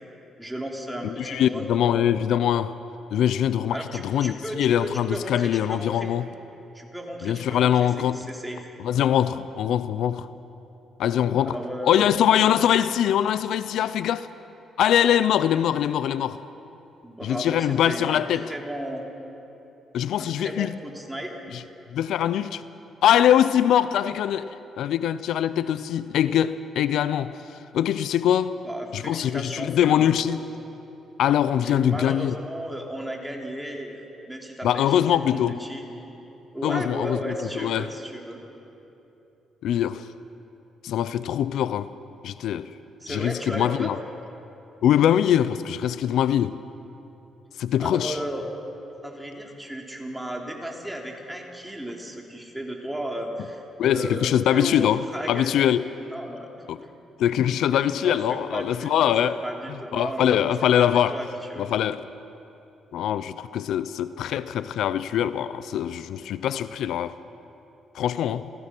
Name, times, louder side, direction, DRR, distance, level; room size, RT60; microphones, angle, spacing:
voice 1, 0.4-2.1 3.7-6.1 6.7-8.6 11.4-12.1 17.0-18.2 18.5-19.0 20.2-21.3 28.6-30.2 31.6-35.9 36.5-38.4 43.0-43.9 47.8-48.4 49.0-55.6 56.0-56.9 57.7-59.1 59.4-61.7, right 1 dB, 5° right, 3.2 m, -34 dB
voice 2, 1.0-2.8 3.1-6.3 7.2-8.2 8.8-10.3 11.0-11.6 11.8-14.3 14.8-16.4 17.2-18.5 19.9-20.7 21.5-21.6 21.9-22.6 23.0-28.6 28.9-30.4 31.2-32.4 34.6-35.6 36.6-37.9 39.6-40.1 40.8-41.9 42.2-42.7 43.1-44.0 44.8-46.6 47.6-48.2 53.8-55.8 56.7-56.8 57.2-59.4 59.9-61.2 61.6-62.1 62.9-67.2 67.9-68.5, left 10 dB, 80° left, 0.5 m, -23 dB
28.5 x 15.5 x 6.1 m
cardioid pair, 90°, 0 cm